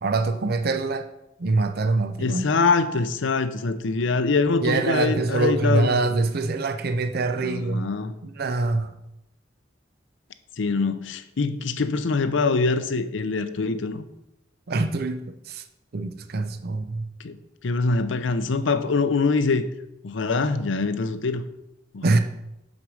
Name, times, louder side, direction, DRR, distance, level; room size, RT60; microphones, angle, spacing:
voice 1, 0.0-1.1 1.4-2.5 4.6-7.9 8.2-8.9 14.7-15.6 15.9-17.1 22.0-22.2, right 3 dB, 50° right, 0.5 m, -24 dB
voice 2, 2.2-5.9 7.4-8.1 10.6-14.0 17.2-17.3 17.6-19.6 20.0-21.4 21.9-22.2, left 4 dB, 70° left, 0.6 m, -24 dB
6.1 x 5.1 x 6.2 m
head